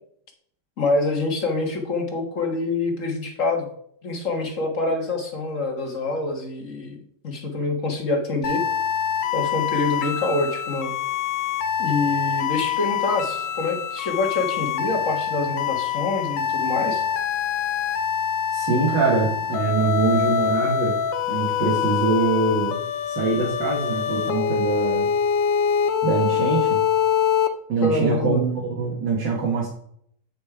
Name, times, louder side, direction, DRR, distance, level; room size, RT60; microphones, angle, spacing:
voice 1, 0.8-3.7 4.0-7.0 7.2-8.6 9.3-10.9 11.8-17.0 27.8-28.4, left 2 dB, 45° left, 2 dB, 1.8 m, -26 dB
sound 1, 8.4-27.5, left 8 dB, 80° left, 1.5 m, -25 dB
voice 2, 18.5-21.0 21.3-22.8 23.1-25.1 26.0-26.8 27.7-29.7, right 4 dB, 80° right, -3 dB, 2.3 m, -23 dB
9.0 x 5.2 x 4.8 m, 0.65 s
omnidirectional pair, 1.9 m